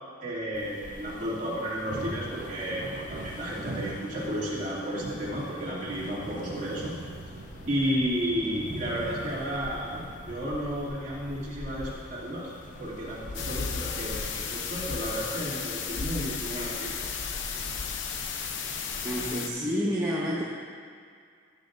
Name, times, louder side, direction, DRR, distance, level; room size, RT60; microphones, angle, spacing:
voice 1, 0.2-6.9 7.7-12.5 12.8-17.1, equal, 40° right, -7 dB, 2.6 m, -32 dB
sound 1, 0.5-19.3, left 2 dB, 40° left, 0.5 m, -43 dB
Thunder, 1.8-15.6, right 1 dB, 55° right, 1.0 m, -43 dB
sound 2, 13.3-19.5, left 7 dB, 80° left, 0.8 m, -35 dB
voice 2, 19.0-20.4, equal, 15° right, -8 dB, 1.1 m, -29 dB
18.5 x 8.5 x 2.6 m, 2.1 s
head